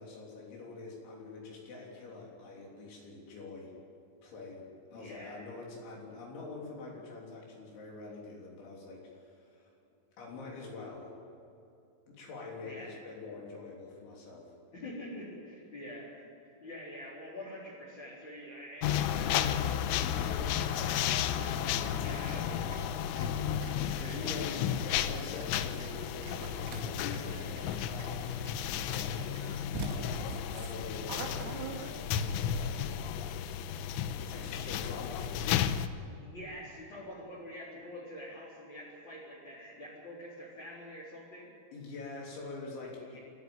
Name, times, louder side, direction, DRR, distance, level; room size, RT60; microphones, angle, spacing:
voice 1, 0.0-3.8 4.2-9.7 10.2-11.2 12.1-14.5 23.2-28.4 28.7-30.2 30.5-32.9 34.2-35.8 41.7-43.2, left 3 dB, 70° left, -2 dB, 5.7 m, -45 dB
voice 2, 4.9-5.4 12.6-12.9 14.7-22.9 24.0-24.4 36.1-41.5 43.0-43.2, left 1 dB, 25° left, -6 dB, 4.1 m, -46 dB
sound 1, 18.8-35.9, left 9 dB, 85° left, 3.3 m, -33 dB
Cheering, 20.0-21.5 21.8-23.3 23.6-25.0 25.4-26.8 27.1-28.5 28.9-30.3, right 5 dB, 60° right, 1.6 m, -54 dB
sound 2, 26.4-26.8 29.1-29.2 29.7-32.3, right 4 dB, 90° right, 4.7 m, -40 dB
25.5 x 14.5 x 8.8 m, 2.7 s
omnidirectional pair, 5.6 m